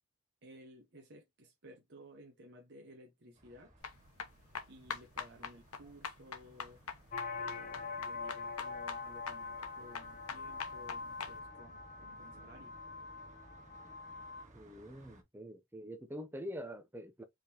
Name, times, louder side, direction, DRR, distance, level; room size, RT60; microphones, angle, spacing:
voice 1, 0.4-3.7 4.7-6.8 7.4-12.7 14.1-14.2, equal, 50° right, 0.9 m, -56 dB
sound 1, 3.3-15.2, right 1 dB, 35° right, 1.6 m, -61 dB
sound 2, 3.8-11.3, left 6 dB, 80° left, 0.9 m, -44 dB
sound 3, 7.1-14.4, left 4 dB, 35° left, 0.7 m, -44 dB
voice 2, 14.5-17.2, equal, 10° right, 0.6 m, -45 dB
5.0 x 3.5 x 2.8 m
head